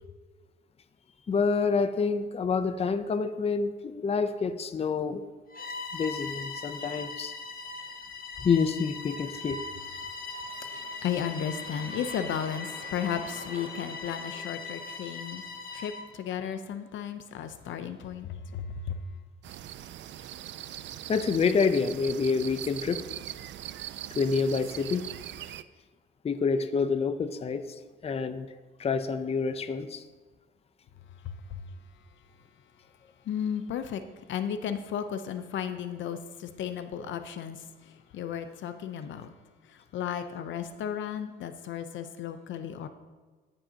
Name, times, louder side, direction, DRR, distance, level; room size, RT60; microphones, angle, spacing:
voice 1, 1.3-5.2 5.9-7.4 8.4-9.6 21.1-23.0 24.1-25.1 26.2-28.5 28.8-30.0, left 5 dB, 30° left, 10 dB, 0.6 m, -27 dB
Bowed string instrument, 5.5-16.1, left 4 dB, 45° left, 1.5 m, -40 dB
sound 1, 10.2-15.6, right 2 dB, 35° right, 2.8 m, -49 dB
voice 2, 10.6-15.4 15.7-19.0 31.2-31.6 33.3-34.0 34.3-39.3 39.9-42.9, left 8 dB, 70° left, 9 dB, 0.7 m, -34 dB
sound 2, 19.4-25.6, right 12 dB, 70° right, 0.4 m, -41 dB
15.5 x 5.5 x 2.8 m, 1.4 s
cardioid pair, 90°, 20 cm